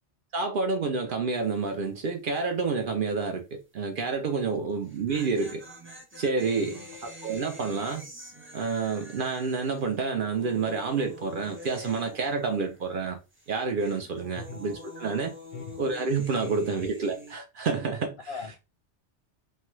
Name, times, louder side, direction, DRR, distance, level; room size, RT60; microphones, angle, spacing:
voice 1, 0.3-5.6 6.2-8.1 8.5-13.2 13.5-15.3 15.8-18.2, right 4 dB, 60° right, 0.6 m, -29 dB
sound 1, 1.3-1.7 1.9-2.0 4.7-13.1 13.3-17.3, equal, 20° right, 0.3 m, -46 dB
voice 2, 6.5-7.0 14.3-14.6 15.5-15.8 16.4-16.8 18.3-18.6, left 4 dB, 65° left, 0.7 m, -40 dB
3.2 x 2.2 x 2.9 m
omnidirectional pair, 1.2 m